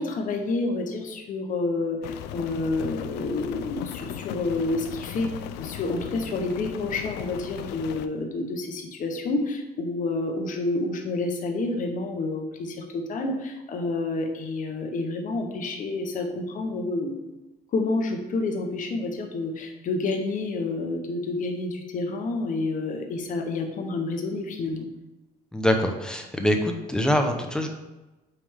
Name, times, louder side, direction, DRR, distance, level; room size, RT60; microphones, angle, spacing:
voice 1, 0.0-5.3 5.5-17.1 17.7-24.9, left 3 dB, 50° left, 3 dB, 1.1 m, -29 dB
Rain, 2.0-8.1, left 10 dB, 90° left, 0.4 m, -37 dB
voice 2, 25.5-27.7, equal, 5° left, 3 dB, 0.7 m, -24 dB
8.3 x 3.5 x 3.6 m, 1.1 s
cardioid pair, 110°, 17 cm